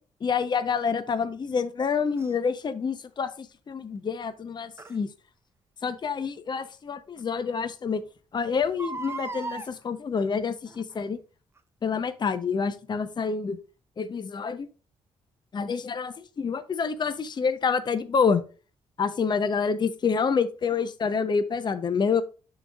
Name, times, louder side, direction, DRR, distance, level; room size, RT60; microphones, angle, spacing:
voice 1, 0.2-5.1 5.8-8.0 8.3-11.2 11.8-13.6 14.0-14.7 15.5-18.4 19.0-22.2, left 5 dB, 40° left, 12 dB, 0.6 m, -27 dB
Crying sobbing, 2.2-2.3 4.8-5.0 6.6-6.7 7.2-7.3 7.5-7.6 8.6-9.7 10.7-11.0 11.6-11.7, right 3 dB, 20° right, 0.6 m, -37 dB
11.0 x 3.9 x 2.3 m, 0.35 s
cardioid pair, 85°, 12 cm